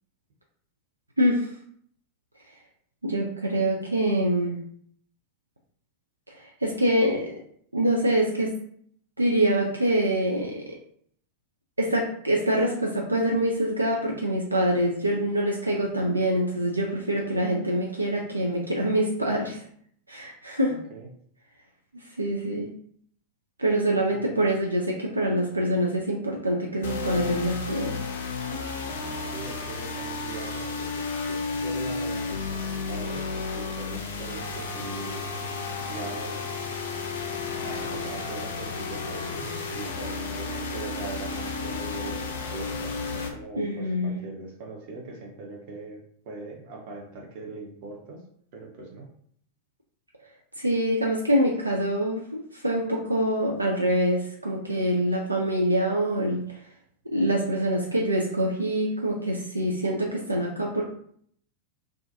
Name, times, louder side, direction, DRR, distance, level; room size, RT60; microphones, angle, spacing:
voice 1, 1.2-1.5 3.0-4.6 6.3-7.3 7.7-8.5 9.2-10.8 11.8-19.6 20.1-20.8 21.9-22.7 23.6-28.0 43.6-44.2 50.6-56.4 57.1-60.8, right 1 dB, 85° right, -1 dB, 0.3 m, -25 dB
voice 2, 20.7-21.1 24.1-24.3 29.3-35.3 35.9-36.5 37.6-48.2 48.5-49.1, right 3 dB, 50° right, 0 dB, 0.7 m, -41 dB
sound 1, 26.8-43.3, left 4 dB, 60° left, 0.4 m, -32 dB
2.3 x 2.2 x 2.7 m, 0.63 s
figure-of-eight pair, 90°, 0 cm